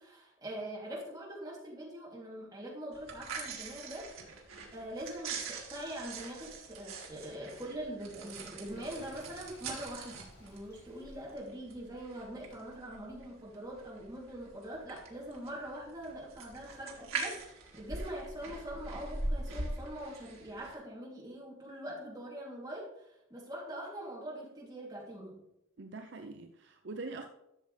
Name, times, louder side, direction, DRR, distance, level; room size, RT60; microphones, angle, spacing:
voice 1, 0.0-4.1 4.7-25.4, right 1 dB, 20° right, -5 dB, 2.9 m, -43 dB
sound 1, 2.9-20.7, right 3 dB, 80° right, 2.2 m, -43 dB
Sink (filling or washing), 8.6-11.4, left 1 dB, 50° left, 2.8 m, -56 dB
voice 2, 25.8-27.3, right 3 dB, 55° right, 6 dB, 0.6 m, -43 dB
13.0 x 6.9 x 3.3 m, 0.84 s
head